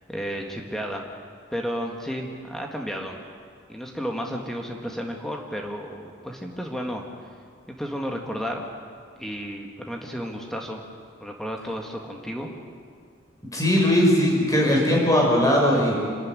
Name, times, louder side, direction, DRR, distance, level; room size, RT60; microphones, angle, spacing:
voice 1, 0.1-1.0 1.5-3.2 3.7-7.1 7.8-8.6 9.2-10.8 11.2-12.5, equal, ahead, 1 dB, 1.8 m, -32 dB
voice 2, 13.5-16.0, left 1 dB, 20° left, -2 dB, 6.1 m, -19 dB
27.0 x 13.0 x 9.8 m, 2.1 s
head